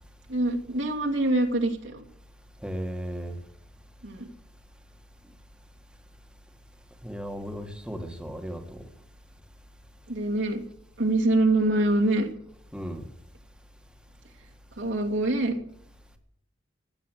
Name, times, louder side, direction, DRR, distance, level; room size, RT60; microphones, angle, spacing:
voice 1, 0.3-2.0 4.0-4.3 10.1-10.6 11.0-12.3 14.8-15.5, right 2 dB, 75° right, 2.6 m, -24 dB
voice 2, 2.6-3.4 7.0-8.8 12.7-13.1, equal, 5° right, 1.8 m, -35 dB
15.5 x 9.3 x 7.9 m
head